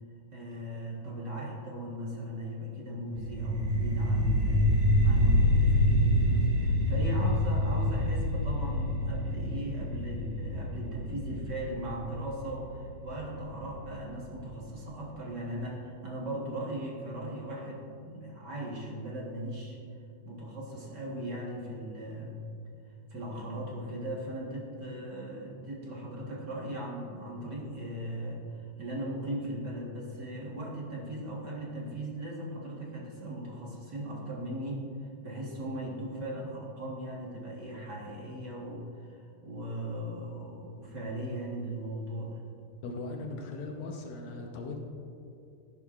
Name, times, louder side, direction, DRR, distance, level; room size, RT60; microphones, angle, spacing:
voice 1, 0.3-19.8 20.2-22.4 23.1-42.5, right 1 dB, 55° right, -4 dB, 1.2 m, -38 dB
sound 1, 3.2-14.2, left 1 dB, 85° right, 3.1 m, -27 dB
voice 2, 42.8-44.8, left 3 dB, 70° left, 1 dB, 1.9 m, -38 dB
13.5 x 11.0 x 2.5 m, 2.6 s
omnidirectional pair, 3.9 m